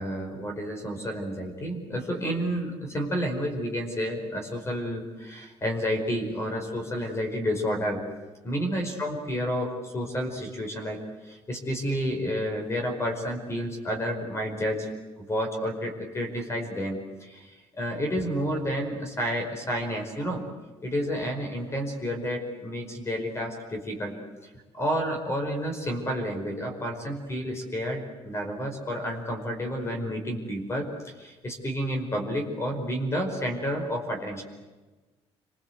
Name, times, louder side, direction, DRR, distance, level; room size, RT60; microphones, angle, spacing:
voice 1, 0.0-8.0 8.4-14.9 15.2-20.4 20.8-34.4, equal, 25° left, 3 dB, 5.1 m, -30 dB
30.0 x 23.5 x 8.1 m, 1.2 s
cardioid pair, 140°, 11 cm